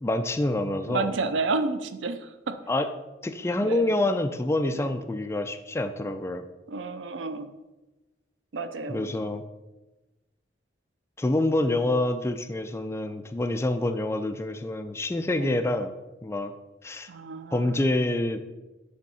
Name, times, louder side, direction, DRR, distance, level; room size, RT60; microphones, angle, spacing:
voice 1, 0.0-1.1 2.7-2.9 3.2-6.4 8.9-9.4 11.2-15.9 16.2-16.5 16.8-17.1 17.5-18.4, left 1 dB, 15° left, 8 dB, 0.3 m, -27 dB
voice 2, 0.9-2.6 3.6-4.0 4.7-4.9 6.7-7.5 8.5-9.4 15.4-15.6 17.1-17.8, right 3 dB, 90° right, 10 dB, 0.5 m, -31 dB
6.5 x 3.6 x 5.5 m, 1.1 s
head